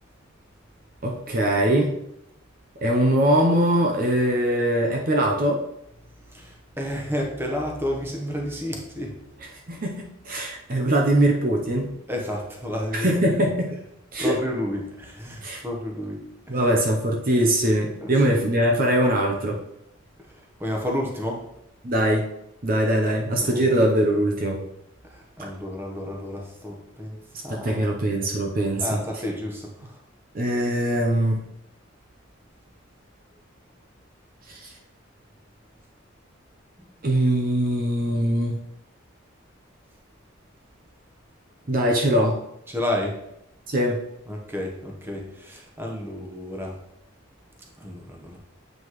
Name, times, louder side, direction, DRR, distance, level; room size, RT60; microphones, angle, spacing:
voice 1, 1.0-2.0 2.8-5.6 9.7-11.9 12.9-13.7 14.1-14.3 15.4-15.6 16.5-19.6 21.8-22.2 22.6-24.6 27.5-29.0 30.3-31.4 34.5-34.7 37.0-38.6 41.7-42.4 43.7-44.0, right 1 dB, 45° right, 1 dB, 0.8 m, -22 dB
voice 2, 6.3-9.2 12.1-13.3 14.2-16.2 16.5-16.6 18.0-18.3 20.6-21.4 23.1-23.6 25.1-27.2 27.4-27.8 28.8-29.7 36.8-36.9 42.7-43.1 44.3-46.7 47.8-48.4, left 1 dB, 10° right, 0 dB, 1.1 m, -31 dB
7.8 x 5.3 x 3.1 m, 0.81 s
head